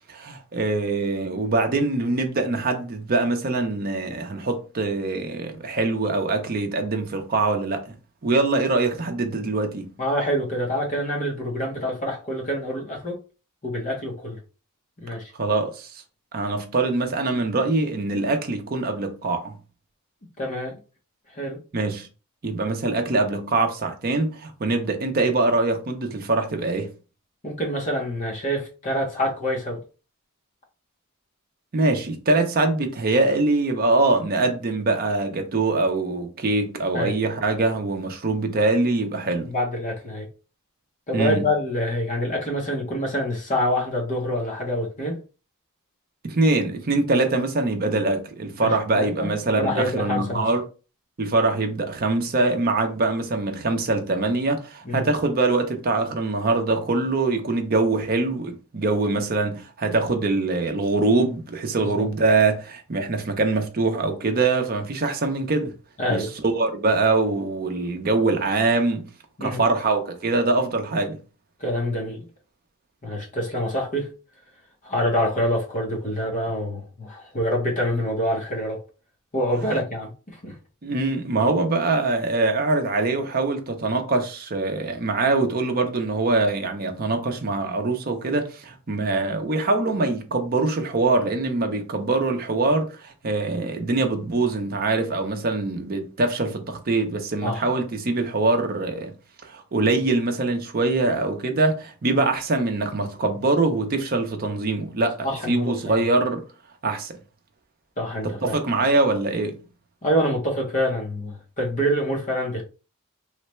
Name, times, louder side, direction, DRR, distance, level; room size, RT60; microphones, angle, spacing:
voice 1, 0.1-7.9 8.2-9.9 15.3-15.9 16.3-19.5 21.7-22.1 22.4-26.9 31.7-39.5 41.1-41.5 46.2-50.6 51.2-65.7 66.1-69.0 69.4-71.2 79.6-79.7 80.8-99.1 99.4-106.4 106.8-107.2 108.4-109.6, right 3 dB, 45° right, 0.5 m, -23 dB
voice 2, 10.0-13.2 13.6-14.4 15.0-15.3 20.4-20.7 21.3-21.6 27.4-29.8 36.9-37.2 39.4-40.3 41.1-45.2 48.6-49.3 49.6-50.4 54.8-55.1 61.8-62.1 66.0-66.3 69.4-69.6 71.6-72.3 73.0-74.1 74.8-78.8 79.3-80.6 97.4-97.6 105.2-106.1 108.0-108.6 110.0-112.6, equal, 35° left, 0.7 m, -26 dB
3.2 x 2.1 x 2.9 m
head